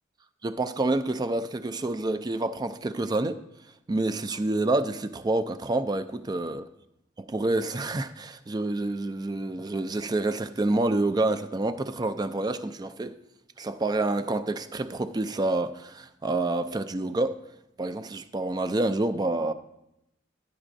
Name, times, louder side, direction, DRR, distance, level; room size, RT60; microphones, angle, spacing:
voice 1, 0.4-3.4 3.9-6.6 7.3-13.2 13.6-17.3 17.8-19.5, right 2 dB, 20° right, 12 dB, 0.3 m, -28 dB
11.0 x 9.7 x 2.6 m, 0.84 s
head